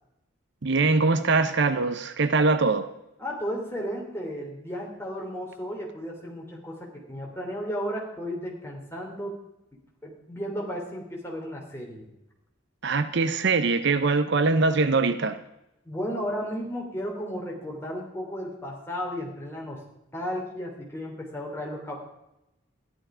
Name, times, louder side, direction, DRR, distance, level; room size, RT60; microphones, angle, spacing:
voice 1, 0.6-2.9 12.8-15.4, right 3 dB, 60° right, 0.7 m, -22 dB
voice 2, 3.2-9.3 10.0-12.1 15.8-19.8 20.1-21.9, equal, 10° left, 3.1 m, -34 dB
14.0 x 11.5 x 5.0 m
head